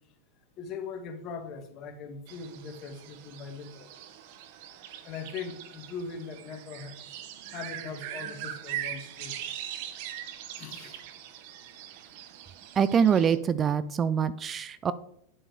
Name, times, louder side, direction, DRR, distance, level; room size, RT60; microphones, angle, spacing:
voice 1, 0.6-3.9 5.0-7.0 7.5-9.4 10.6-11.1, left 5 dB, 40° left, 1.7 m, -40 dB
sound 1, 2.3-13.4, right 11 dB, 55° right, 1.2 m, -41 dB
voice 2, 12.8-14.9, right 7 dB, 25° right, 0.4 m, -24 dB
10.0 x 7.5 x 4.9 m
hypercardioid pair, 125°, 0 cm